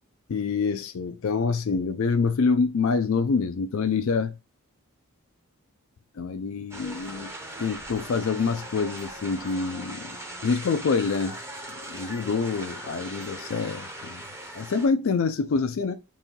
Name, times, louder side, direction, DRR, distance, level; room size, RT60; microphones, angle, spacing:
voice 1, 0.3-4.4 6.1-7.3 7.6-10.2 10.4-11.4 11.9-14.2 14.5-15.9, left 5 dB, 60° left, 0.4 m, -26 dB
sound 1, 6.7-14.9, right 1 dB, 10° right, 0.7 m, -39 dB
4.1 x 2.6 x 3.6 m
head